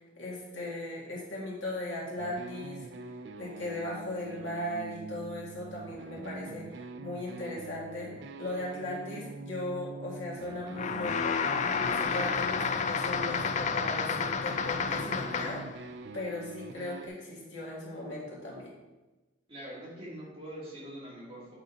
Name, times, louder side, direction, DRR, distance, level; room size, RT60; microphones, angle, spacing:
voice 1, 0.2-2.9 3.4-11.4 11.7-15.6 16.1-18.7, left 1 dB, 80° left, -4 dB, 2.2 m, -38 dB
sound 1, 2.2-17.1, right 3 dB, 60° right, 0.4 m, -44 dB
sound 2, 10.7-15.7, left 5 dB, 40° left, 0.3 m, -30 dB
voice 2, 19.5-21.5, right 1 dB, 30° right, -6 dB, 2.0 m, -43 dB
7.9 x 4.0 x 4.1 m, 1.1 s
head